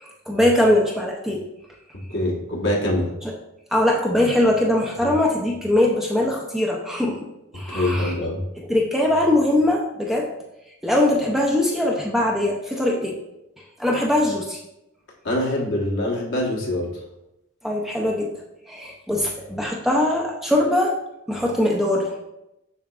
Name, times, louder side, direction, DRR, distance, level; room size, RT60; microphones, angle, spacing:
voice 1, 0.0-1.4 3.7-7.2 7.5-8.1 8.6-10.3 10.8-13.2 13.8-14.6 17.6-18.3 18.7-20.9 21.3-22.1, left 1 dB, ahead, -2 dB, 0.5 m, -21 dB
voice 2, 2.1-3.1 5.0-5.1 7.7-8.4 15.2-17.0, left 1 dB, 60° left, -2 dB, 1.3 m, -24 dB
7.2 x 5.8 x 2.4 m, 0.90 s
head